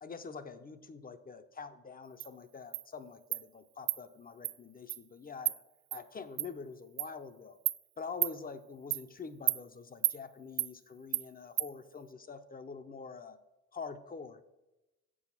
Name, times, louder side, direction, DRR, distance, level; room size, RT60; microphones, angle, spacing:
voice 1, 0.0-5.6 5.9-7.6 8.0-13.4 13.7-14.4, left 5 dB, 30° left, 10 dB, 0.8 m, -45 dB
Insect, 2.2-2.3 2.7-2.8 3.3-3.4 3.9-4.0 4.4-4.5 4.9-5.0 5.4-5.6 5.9-6.0 6.4-6.5 7.0-7.1 7.7-7.8 8.2-8.3 8.9-9.0 9.5-9.6 10.0-10.2 10.6-10.7 11.1-11.2 11.6-11.7, right 16 dB, 85° right, 0.5 m, -31 dB
7.7 x 6.3 x 7.4 m, 1.0 s
cardioid pair, 90°, 30 cm